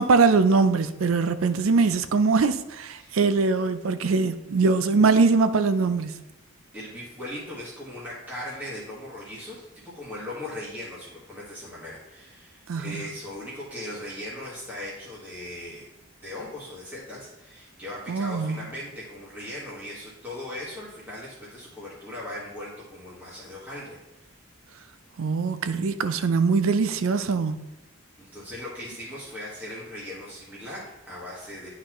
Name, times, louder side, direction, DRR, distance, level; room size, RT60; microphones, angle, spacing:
voice 1, 0.0-6.2 12.7-13.0 18.1-18.6 25.2-27.7, right 4 dB, 75° right, 0.5 m, -22 dB
voice 2, 6.7-15.9 16.2-24.3 28.2-31.7, left 1 dB, 10° right, 1.7 m, -39 dB
11.0 x 4.1 x 3.1 m
head